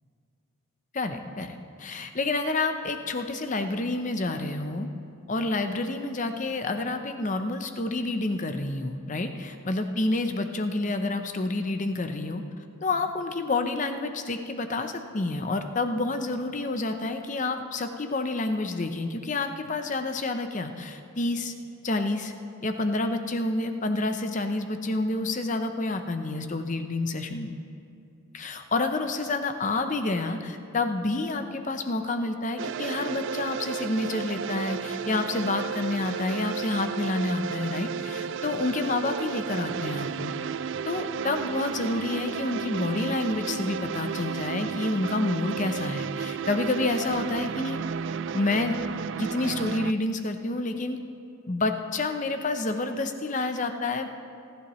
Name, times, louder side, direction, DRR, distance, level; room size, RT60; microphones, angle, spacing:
voice 1, 0.9-4.9 5.3-12.4 12.8-21.5 21.8-22.3 22.6-27.5 28.3-40.3 40.9-47.8 48.3-48.7 49.2-51.0 51.5-54.1, left 2 dB, 35° left, 7 dB, 0.7 m, -29 dB
sound 1, 32.6-49.9, right 6 dB, 55° right, 0.3 m, -33 dB
28.5 x 11.5 x 3.1 m, 2.5 s
head